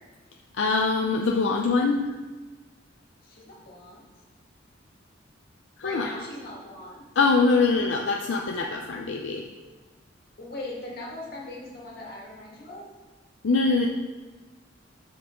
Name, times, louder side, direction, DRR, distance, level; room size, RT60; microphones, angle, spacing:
voice 1, 0.5-2.1 5.8-6.1 7.2-9.5 13.4-13.9, left 3 dB, 80° left, 1 dB, 0.5 m, -23 dB
voice 2, 3.2-4.0 5.8-7.0 10.4-12.9, left 2 dB, 55° left, -4 dB, 1.9 m, -39 dB
6.8 x 5.6 x 3.7 m, 1.3 s
head